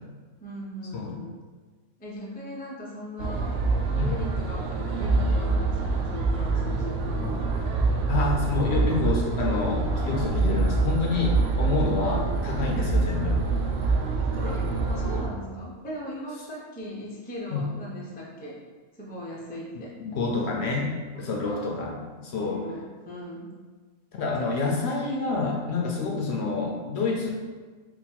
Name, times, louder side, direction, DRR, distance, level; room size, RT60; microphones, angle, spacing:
voice 1, 0.4-1.4 2.0-3.6 3.9-7.3 12.6-12.9 14.2-18.6 18.9-19.9 21.1-21.7 22.3-23.5 26.2-26.5, equal, 15° left, -4 dB, 0.4 m, -39 dB
sound 1, 3.2-15.2, right 3 dB, 80° right, 1.0 m, -25 dB
voice 2, 8.1-13.4 17.5-17.6 19.7-20.9 21.2-21.9 22.2-22.6 24.2-27.3, left 3 dB, 65° left, -1 dB, 0.7 m, -28 dB
3.6 x 2.2 x 4.4 m, 1.4 s
omnidirectional pair, 1.3 m